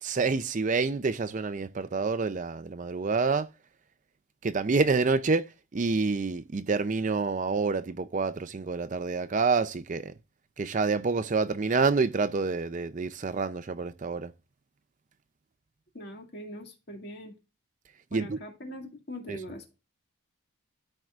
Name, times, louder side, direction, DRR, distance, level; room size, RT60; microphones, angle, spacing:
voice 1, 0.0-3.5 4.4-5.5 5.7-10.1 10.6-14.3 18.1-18.4 19.3-19.4, right 4 dB, 35° right, 0.4 m, -27 dB
voice 2, 15.9-17.4 18.1-19.8, equal, 45° left, 2.1 m, -42 dB
13.5 x 4.5 x 2.4 m
head